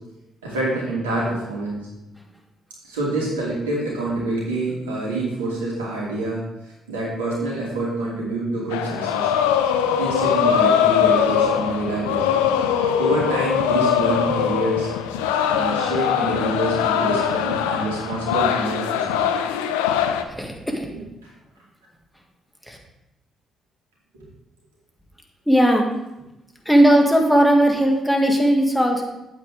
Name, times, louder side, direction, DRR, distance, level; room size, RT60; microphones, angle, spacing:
voice 1, 0.4-1.9 2.8-6.4 6.9-9.3 10.0-12.4 13.0-14.9 15.5-19.2, right 2 dB, 85° right, -5 dB, 2.6 m, -26 dB
sound 1, 8.7-20.2, left 8 dB, 80° left, 0.5 m, -21 dB
voice 2, 20.3-20.9 22.7-22.8 25.5-25.9 26.7-29.0, right 1 dB, 5° left, 1 dB, 2.1 m, -17 dB
8.7 x 8.2 x 3.6 m, 0.94 s
hypercardioid pair, 45°, 0 cm